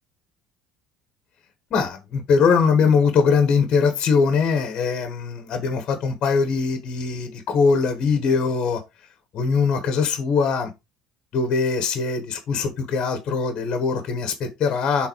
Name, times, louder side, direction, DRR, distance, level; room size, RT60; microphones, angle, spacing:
voice 1, 1.7-8.8 9.3-10.7 11.3-15.1, left 5 dB, 35° left, 1.3 m, -21 dB
6.7 x 4.0 x 4.6 m
cardioid pair, 180°, 2 cm